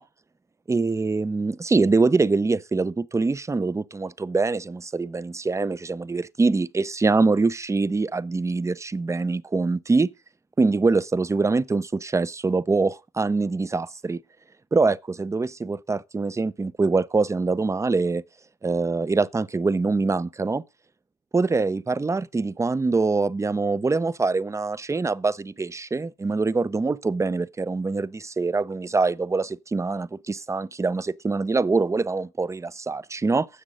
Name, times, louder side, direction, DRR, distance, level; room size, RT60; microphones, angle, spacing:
voice 1, 0.7-10.1 10.6-14.2 14.7-18.2 18.6-20.6 21.3-33.5, right 3 dB, 15° right, 0.5 m, -24 dB
10.0 x 7.4 x 5.1 m
cardioid pair, 90°, 20 cm